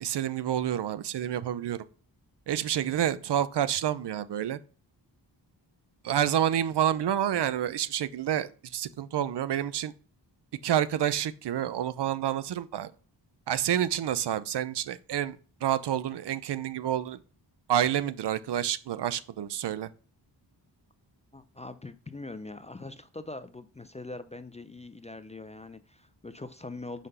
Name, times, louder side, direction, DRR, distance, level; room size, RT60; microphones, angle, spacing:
voice 1, 0.0-1.8 2.5-4.6 6.0-9.9 10.6-12.9 13.5-17.2 17.7-19.9, right 10 dB, 65° right, 0.6 m, -28 dB
voice 2, 21.3-27.1, left 2 dB, 15° left, 0.4 m, -42 dB
6.3 x 3.9 x 5.4 m
cardioid pair, 80°, 44 cm